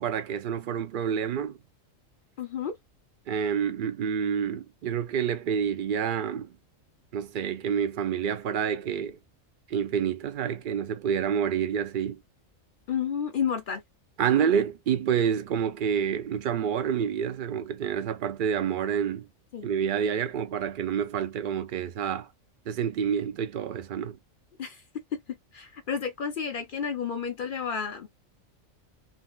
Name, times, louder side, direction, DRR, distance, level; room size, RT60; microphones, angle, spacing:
voice 1, 0.0-1.6 3.3-6.6 7.1-9.2 9.7-12.2 14.2-19.3 19.6-22.3 22.7-24.2, right 8 dB, 65° right, 0.5 m, -28 dB
voice 2, 2.4-2.8 12.9-13.8 19.5-19.7 24.6-24.8 25.5-28.1, left 7 dB, 60° left, 0.6 m, -31 dB
3.6 x 2.4 x 2.3 m
omnidirectional pair, 1.4 m